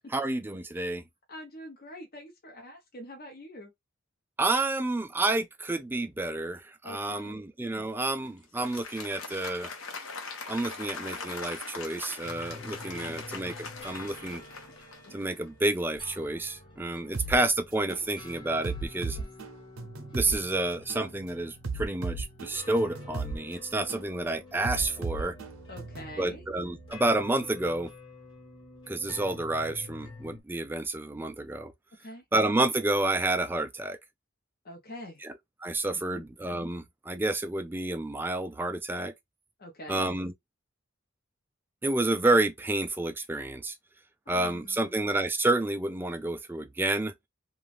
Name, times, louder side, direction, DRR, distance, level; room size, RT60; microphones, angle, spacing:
voice 1, 0.1-1.0 4.4-9.7 10.5-14.4 15.1-19.2 20.1-25.4 26.2-27.9 28.9-31.7 32.3-34.0 35.2-39.1 39.9-40.3 41.8-43.8 44.3-47.1, right 2 dB, 10° right, 0.3 m, -29 dB
voice 2, 1.3-3.7 6.8-7.4 12.8-13.2 16.8-17.1 19.1-19.3 25.7-26.4 32.0-32.2 34.6-35.2 36.1-36.2 39.6-40.0 44.3-44.9, left 1 dB, 45° left, 0.7 m, -45 dB
Applause, 8.4-15.4, left 4 dB, 75° left, 0.9 m, -41 dB
sound 1, 12.2-30.4, left 2 dB, 25° left, 1.1 m, -48 dB
sound 2, 17.1-17.4 17.9-18.1 18.6-20.4 20.9-21.1 21.6-23.4 23.9-24.1 24.6-26.1, right 4 dB, 90° right, 0.6 m, -35 dB
2.5 x 2.3 x 3.2 m
head